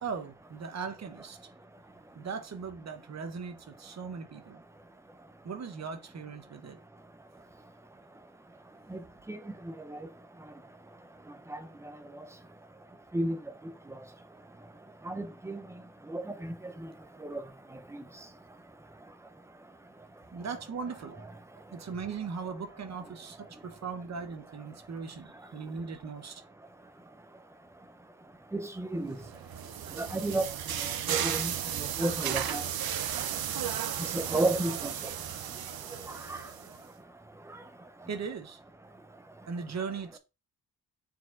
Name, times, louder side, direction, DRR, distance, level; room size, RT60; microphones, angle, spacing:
voice 1, 0.0-1.5 2.1-4.6 5.4-6.8 20.3-21.3 21.7-26.4 38.1-38.6 39.5-40.2, right 5 dB, 40° right, 1.0 m, -39 dB
voice 2, 15.1-15.6 16.1-16.5 16.8-16.9 17.2-17.4 17.9-18.0 28.5-29.2 30.0-30.5 30.8-31.5 31.8-32.6 34.1-34.9 36.3-36.4, right 2 dB, 5° right, 0.6 m, -32 dB
sound 1, 29.2-36.8, right 10 dB, 65° right, 0.7 m, -34 dB
6.8 x 4.3 x 3.8 m
wide cardioid pair, 180°, 39 cm